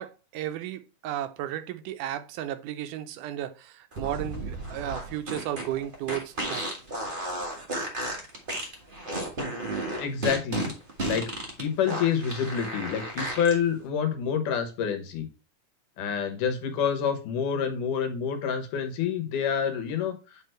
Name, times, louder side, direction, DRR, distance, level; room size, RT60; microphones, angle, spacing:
voice 1, 0.0-6.6, right 12 dB, 90° right, 2.2 m, -34 dB
sound 1, 3.9-13.5, right 2 dB, 55° right, 0.5 m, -33 dB
voice 2, 10.0-10.7 11.0-11.3 11.6-15.3 16.0-20.4, left 7 dB, 85° left, 2.7 m, -28 dB
8.4 x 3.4 x 4.3 m
omnidirectional pair, 3.6 m